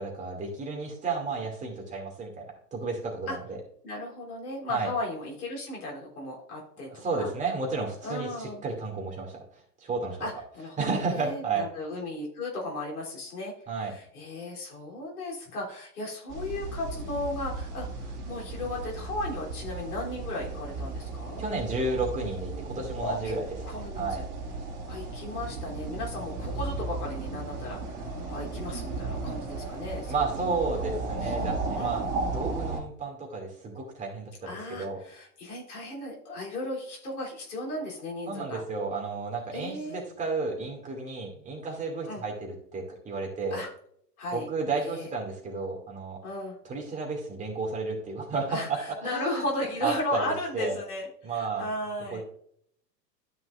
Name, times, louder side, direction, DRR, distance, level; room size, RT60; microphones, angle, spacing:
voice 1, 0.0-2.5 2.7-3.6 4.7-4.9 7.0-9.4 9.8-10.2 10.8-11.7 13.7-13.9 21.4-23.5 23.9-24.2 30.1-32.0 32.3-35.0 38.3-43.6 44.3-46.2 46.7-49.4 49.8-50.8 51.2-51.7 52.1-52.2, right 4 dB, 15° right, 0 dB, 2.4 m, -32 dB
voice 2, 3.8-7.3 8.0-8.6 10.2-13.5 13.8-21.4 23.0-23.4 23.7-24.2 24.9-31.3 31.7-32.1 34.4-38.6 39.5-40.0 42.1-42.2 43.5-43.7 44.2-44.5 44.8-45.1 46.2-46.6 48.5-52.2, left 1 dB, 60° left, -3 dB, 3.5 m, -35 dB
sound 1, 16.3-32.8, right 3 dB, 60° right, 2.2 m, -35 dB
13.0 x 5.9 x 2.5 m, 0.65 s
figure-of-eight pair, 95°, 50 cm